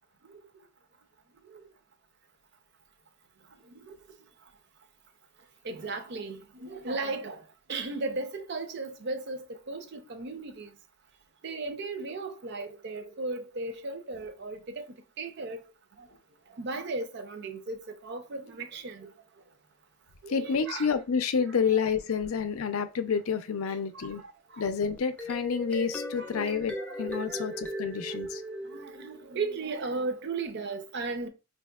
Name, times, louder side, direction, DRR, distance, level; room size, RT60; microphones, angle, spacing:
voice 1, 5.6-7.4 7.7-10.7 11.4-14.9 15.2-15.6 16.6-17.8 18.0-19.1 20.2-20.9 21.7-21.9 24.5-24.6 26.2-26.3 26.8-27.0 28.7-31.3, right 3 dB, 55° right, 0.5 m, -36 dB
voice 2, 20.3-24.2 24.6-28.4, left 6 dB, 85° left, 0.5 m, -29 dB
sound 1, 25.0-29.3, equal, 5° left, 0.3 m, -38 dB
4.3 x 2.7 x 2.2 m
head